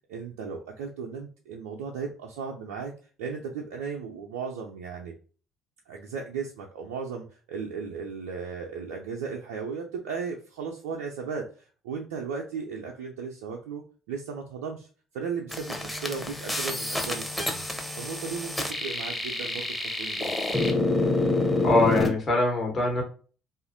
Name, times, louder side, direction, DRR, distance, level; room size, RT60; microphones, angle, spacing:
voice 1, 0.1-2.9 3.2-5.2 5.9-14.9 15.1-17.6 18.0-19.7 20.0-20.3, right 5 dB, 75° right, 0 dB, 0.3 m, -36 dB
sound 1, 15.5-22.1, left 2 dB, 10° left, 0.7 m, -28 dB
voice 2, 21.6-23.0, left 2 dB, 45° left, 0 dB, 1.1 m, -23 dB
2.7 x 2.4 x 2.5 m, 0.39 s
hypercardioid pair, 55°, 0 cm